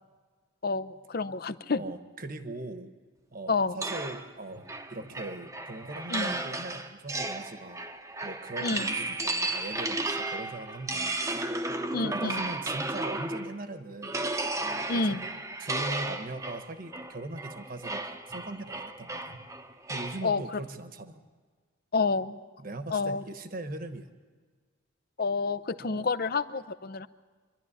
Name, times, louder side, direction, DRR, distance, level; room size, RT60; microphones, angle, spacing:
voice 1, 0.6-1.8 3.5-3.8 6.1-6.3 8.6-8.9 11.9-12.4 14.9-15.3 20.2-20.6 21.9-22.4 22.9-23.2 25.2-27.1, left 4 dB, 45° left, 13 dB, 0.6 m, -29 dB
voice 2, 1.8-2.9 3.3-7.8 8.2-11.2 12.0-14.2 14.9-15.2 15.6-19.4 19.9-21.2 22.6-24.1 25.9-26.1, right 2 dB, 40° right, 9 dB, 1.2 m, -40 dB
sound 1, 3.8-13.6 14.0-20.2, right 2 dB, 15° right, 0.8 m, -34 dB
25.5 x 11.5 x 10.0 m, 1.5 s
head